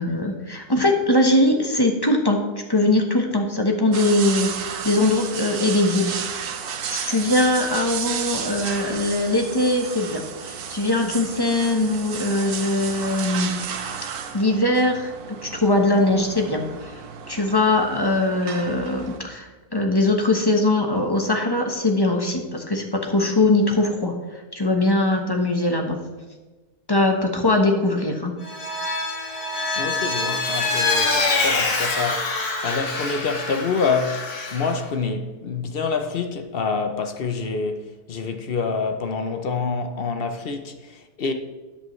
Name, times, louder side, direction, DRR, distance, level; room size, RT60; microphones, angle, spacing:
voice 1, 0.0-2.4 2.7-6.1 6.9-13.5 14.3-17.0 17.3-24.1 24.5-26.0 26.9-28.3, left 2 dB, 20° left, 0.9 m, -21 dB
sound 1, 3.9-19.2, right 7 dB, 80° right, 1.4 m, -33 dB
Vehicle, 28.4-34.8, left 3 dB, 85° left, 2.0 m, -25 dB
voice 2, 29.8-37.8 38.1-41.3, left 4 dB, 50° left, 0.8 m, -27 dB
13.0 x 8.4 x 3.2 m
omnidirectional pair, 1.6 m